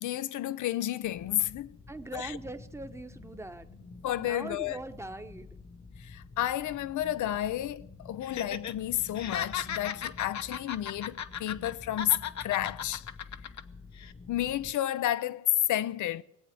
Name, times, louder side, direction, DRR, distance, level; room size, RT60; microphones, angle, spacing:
voice 1, 0.0-1.8 2.1-2.4 4.0-4.8 6.0-13.0 14.3-16.2, left 13 dB, 90° left, 0.6 m, -31 dB
sound 1, 1.0-14.7, left 3 dB, 35° left, 1.0 m, -50 dB
voice 2, 1.9-3.7 4.2-5.6, right 2 dB, 10° right, 1.0 m, -41 dB
Laughter, 8.2-8.7 9.0-11.7 12.0-13.6 14.0-14.1, left 8 dB, 70° left, 0.9 m, -36 dB
19.0 x 8.3 x 9.3 m
cardioid pair, 75°, 29 cm